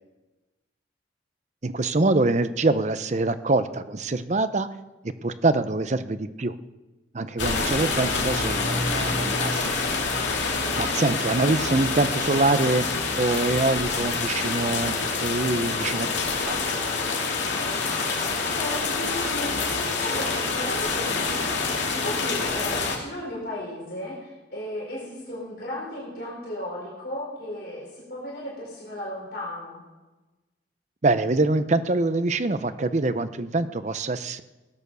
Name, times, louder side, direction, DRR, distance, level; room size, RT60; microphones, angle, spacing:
voice 1, 1.6-4.7 5.0-6.6 7.1-9.8 10.8-12.9 13.2-16.1 16.4-16.6 31.0-34.4, right 2 dB, 40° right, 12 dB, 0.7 m, -24 dB
sound 1, 7.4-23.0, left 4 dB, 85° left, 2.4 m, -26 dB
voice 2, 18.4-29.8, left 1 dB, 60° left, -5 dB, 4.5 m, -35 dB
17.0 x 9.2 x 6.8 m, 1.1 s
head